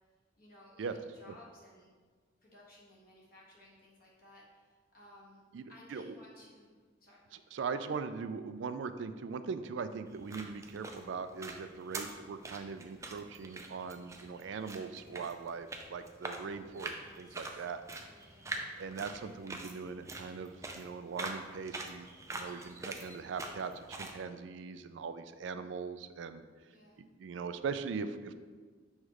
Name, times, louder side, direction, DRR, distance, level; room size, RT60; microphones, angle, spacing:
voice 1, 0.4-1.9 2.4-5.4 5.7-7.4 16.2-16.4 16.8-17.6 18.1-18.6 26.7-27.0, left 1 dB, 50° left, -5 dB, 1.5 m, -58 dB
voice 2, 5.5-6.2 7.3-17.9 18.8-26.4 27.2-28.3, right 5 dB, 80° right, 10 dB, 0.4 m, -40 dB
walking on a dusty road, 10.1-24.2, right 2 dB, 15° right, 0.4 m, -45 dB
6.3 x 3.2 x 4.9 m, 1.5 s
head